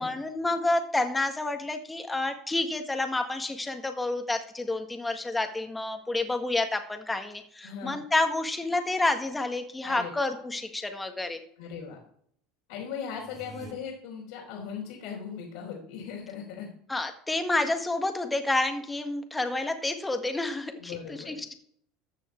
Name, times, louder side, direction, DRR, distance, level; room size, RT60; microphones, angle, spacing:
voice 1, 0.0-11.4 16.9-21.5, left 2 dB, 10° left, 6 dB, 1.7 m, -29 dB
voice 2, 7.6-8.0 9.8-10.1 11.6-12.0 12.7-16.7 20.8-21.4, left 7 dB, 80° left, -6 dB, 3.7 m, -38 dB
sound 1, 13.1-13.7, right 5 dB, 45° right, 2.9 m, -46 dB
14.0 x 6.3 x 4.5 m, 0.64 s
hypercardioid pair, 90°, 0 cm